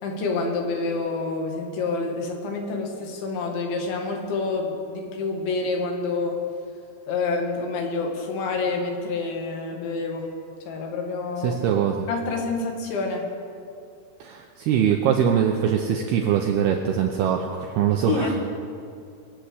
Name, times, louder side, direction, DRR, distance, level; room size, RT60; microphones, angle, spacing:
voice 1, 0.0-6.4 7.1-10.3 10.7-11.6 12.1-13.3 18.1-18.4, left 3 dB, 75° left, 2 dB, 4.0 m, -27 dB
voice 2, 11.4-12.1 14.2-18.3, right 8 dB, 80° right, 2 dB, 2.3 m, -22 dB
22.5 x 7.6 x 8.3 m, 2.4 s
omnidirectional pair, 5.5 m